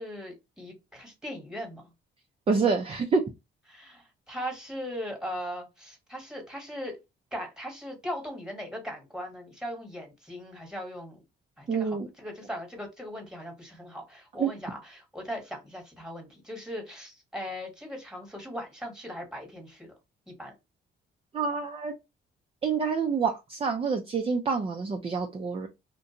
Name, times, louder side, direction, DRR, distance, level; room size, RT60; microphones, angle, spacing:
voice 1, 0.0-1.8 3.7-7.0 7.3-11.2 11.6-19.9 20.3-20.5, equal, 5° right, 1.2 m, -39 dB
voice 2, 2.5-3.2 11.7-12.1 14.4-14.5 21.3-21.9 22.6-25.7, right 5 dB, 30° right, 0.4 m, -27 dB
2.5 x 2.2 x 2.7 m
cardioid pair, 90°, 20 cm